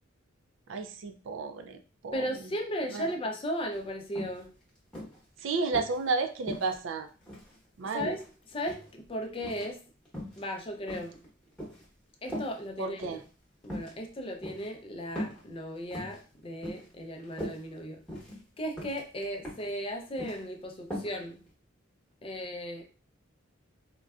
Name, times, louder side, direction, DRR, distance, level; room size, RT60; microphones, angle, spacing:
voice 1, 0.7-1.8 2.0-2.5 2.9-3.1 5.4-7.1 7.8-8.2 12.8-13.2, right 4 dB, 65° right, 7 dB, 0.4 m, -32 dB
voice 2, 2.1-4.5 7.9-8.2 8.5-9.8 10.4-11.2 12.2-13.0 13.6-18.0 18.6-21.4 22.2-22.8, equal, 25° left, 2 dB, 0.4 m, -36 dB
sound 1, 3.7-3.8 4.2-4.4 4.9-6.0 6.5-7.6 8.0-8.9 9.4-9.7 10.1-10.4 10.9-11.9 12.3-12.5 13.0-13.2 13.6-13.9 14.4-14.7 15.2-15.4 15.8-16.2 16.6-16.9 17.2-17.6 18.1-18.4 18.8-19.0 19.4-19.7 20.0-20.4 20.9-21.1 21.5-21.6, equal, 5° left, 1.0 m, -39 dB
3.7 x 2.2 x 2.3 m, 0.36 s
head